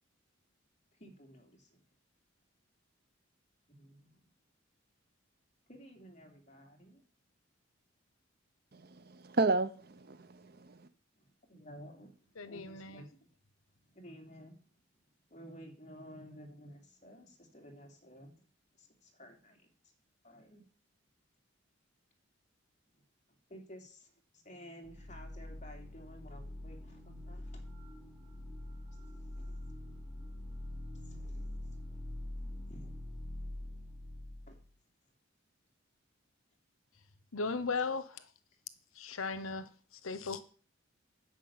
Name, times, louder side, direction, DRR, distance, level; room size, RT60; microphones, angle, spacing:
voice 1, 1.0-1.8 3.7-4.3 5.7-7.0 11.2-13.3 13.9-14.6 15.3-18.4 18.8-19.7 20.2-20.6 22.9-23.0 23.5-27.7 29.1-29.6 30.9-31.5 32.7-32.9 34.5-34.6 37.5-37.7, equal, 35° left, 3.0 m, -54 dB
voice 2, 8.7-10.9, right 3 dB, 50° right, 0.7 m, -33 dB
voice 3, 12.4-13.0 37.3-38.3 38.9-40.4, left 4 dB, 90° left, 1.0 m, -37 dB
sound 1, 24.8-34.7, left 1 dB, ahead, 4.2 m, -44 dB
10.0 x 6.5 x 8.7 m
head